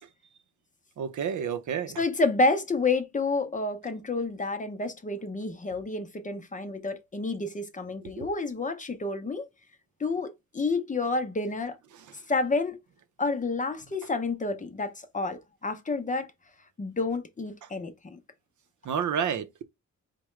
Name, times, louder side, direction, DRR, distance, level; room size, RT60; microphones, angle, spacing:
voice 1, 1.0-2.0 8.2-8.3 18.8-19.6, right 7 dB, 75° right, 0.6 m, -30 dB
voice 2, 2.0-9.5 10.0-11.7 12.3-12.8 13.2-16.3 16.8-18.2, left 3 dB, 25° left, 0.6 m, -29 dB
4.7 x 2.2 x 3.1 m
wide cardioid pair, 155°, 30 cm